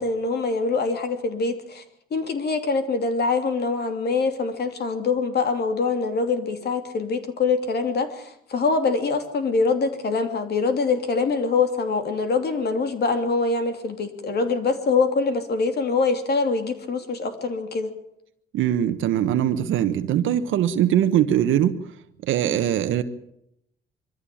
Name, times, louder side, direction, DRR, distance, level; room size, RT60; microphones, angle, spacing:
voice 1, 0.0-1.8 2.1-17.9, left 4 dB, 55° left, 7 dB, 3.0 m, -24 dB
voice 2, 18.5-21.8 22.2-23.0, right 10 dB, 80° right, 9 dB, 1.2 m, -21 dB
23.0 x 14.0 x 8.6 m, 0.77 s
cardioid pair, 90°, 20 cm